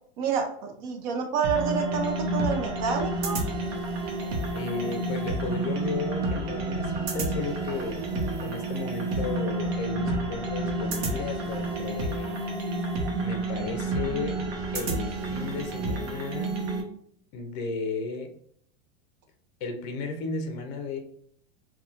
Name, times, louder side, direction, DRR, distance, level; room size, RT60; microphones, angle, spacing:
voice 1, 0.2-3.4, right 5 dB, 50° right, 3 dB, 0.6 m, -28 dB
sound 1, 1.4-16.8, right 2 dB, 75° right, 0.8 m, -30 dB
voice 2, 4.5-8.0 8.4-12.4 13.2-14.4 14.7-16.6 17.3-18.3 19.6-21.0, left 3 dB, 40° left, 4 dB, 0.5 m, -34 dB
2.9 x 2.2 x 2.4 m, 0.65 s
supercardioid pair, 160°, 31 cm